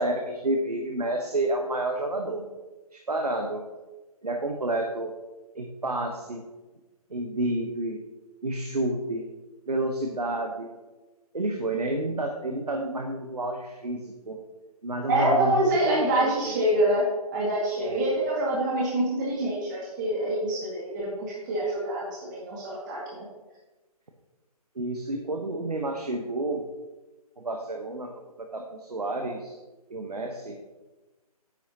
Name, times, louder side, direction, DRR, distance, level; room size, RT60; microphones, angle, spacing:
voice 1, 0.0-2.5 2.9-3.7 4.2-5.1 5.5-6.4 7.1-8.0 8.4-9.3 9.7-10.7 11.3-14.4 14.8-16.6 17.8-18.0 24.7-26.6 27.4-28.1 28.4-29.6 29.9-30.6, right 2 dB, 80° right, 3 dB, 1.1 m, -30 dB
voice 2, 15.1-17.1 17.3-23.2, right 1 dB, 30° right, -4 dB, 2.1 m, -26 dB
10.0 x 8.6 x 2.9 m, 1.2 s
figure-of-eight pair, 145°, 20 cm